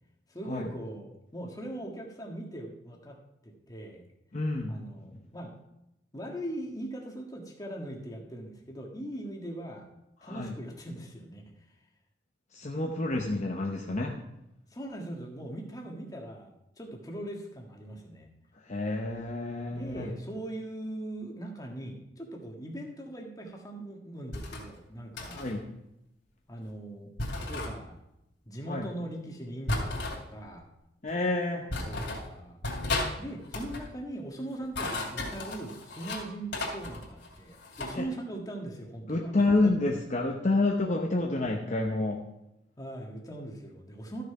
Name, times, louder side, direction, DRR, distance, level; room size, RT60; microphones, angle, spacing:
voice 1, 0.3-3.2 3.4-4.0 4.7-5.5 6.1-9.9 10.2-11.4 14.7-18.3 19.7-25.5 26.5-27.1 27.4-28.0 28.4-30.7 31.8-32.6 33.2-39.3 39.6-39.7 42.8-44.2, right 1 dB, 20° left, 1 dB, 1.5 m, -40 dB
voice 2, 4.3-4.8 5.0-5.1 10.2-10.5 12.5-14.2 18.7-20.1 25.3-25.6 28.7-28.9 31.0-31.7 37.9-38.0 39.1-42.2, left 2 dB, 40° left, 0 dB, 0.9 m, -29 dB
sound 1, 24.3-24.6 25.2-25.5 27.2-27.7 29.7-30.2 31.1-31.2 31.7-32.3 32.6-33.1 33.4-33.9 34.5-36.2 36.5-38.0, left 2 dB, 65° left, 2.6 m, -34 dB
13.5 x 6.6 x 4.8 m, 0.88 s
head